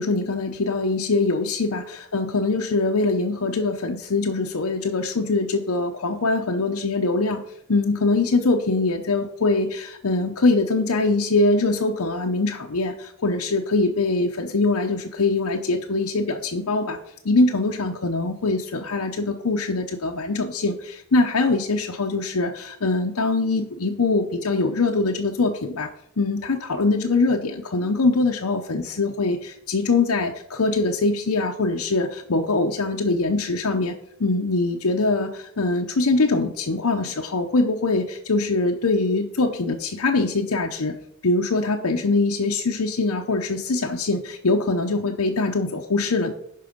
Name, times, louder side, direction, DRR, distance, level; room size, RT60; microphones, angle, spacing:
voice 1, 0.0-7.4 7.7-17.0 17.2-25.9 26.2-33.9 34.2-41.0 41.2-46.3, left 3 dB, 85° left, 1 dB, 0.8 m, -23 dB
11.0 x 4.8 x 5.1 m, 0.71 s
head